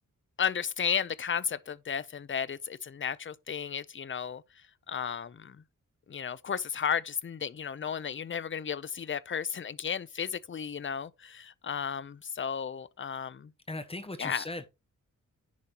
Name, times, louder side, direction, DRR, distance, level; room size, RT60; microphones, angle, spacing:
voice 1, 0.4-4.4 4.9-5.6 6.1-13.5 14.2-14.4, left 7 dB, 40° left, 0.5 m, -34 dB
voice 2, 13.7-14.7, left 2 dB, 20° left, 1.1 m, -38 dB
10.5 x 4.2 x 3.8 m
wide cardioid pair, 150°, 32 cm